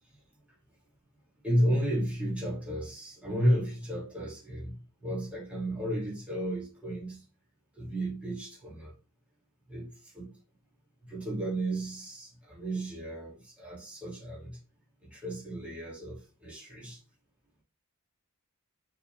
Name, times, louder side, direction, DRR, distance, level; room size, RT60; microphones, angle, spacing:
voice 1, 1.4-7.2 7.7-8.9 9.7-10.4 11.0-14.6 15.0-17.0, equal, 5° right, 2.6 m, -33 dB
6.9 x 4.2 x 3.4 m
head